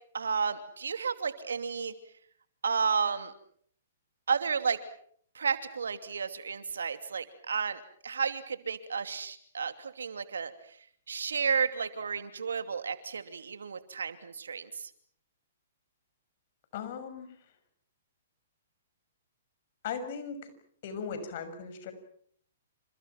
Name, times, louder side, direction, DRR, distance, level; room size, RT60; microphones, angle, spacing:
voice 1, 0.1-2.0 2.6-3.3 4.3-4.8 5.3-10.5 11.1-14.9, right 6 dB, 75° right, 10 dB, 2.8 m, -32 dB
voice 2, 16.7-17.3 19.8-20.5 20.8-21.9, left 6 dB, 50° left, 10 dB, 6.5 m, -38 dB
29.0 x 28.0 x 6.0 m, 0.62 s
hypercardioid pair, 125°, 0 cm